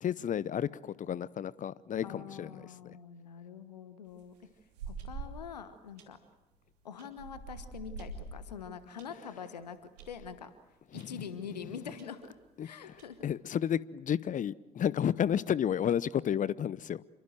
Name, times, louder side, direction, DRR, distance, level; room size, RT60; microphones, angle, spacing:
voice 1, 0.0-3.0 10.9-11.2 12.6-13.0 13.2-17.0, left 9 dB, 40° left, 0.8 m, -32 dB
voice 2, 2.0-4.3 4.9-6.2 6.8-10.5 10.9-12.3 12.6-13.3, left 7 dB, 80° left, 1.3 m, -45 dB
sound 1, 4.1-5.5 6.0-6.3 7.0-9.1 9.5-9.6 10.0-10.2 11.0-11.1 11.4-11.5 12.0-12.1 12.8-13.3, right 4 dB, 75° right, 2.9 m, -44 dB
28.0 x 23.5 x 7.8 m
figure-of-eight pair, 50°, 21 cm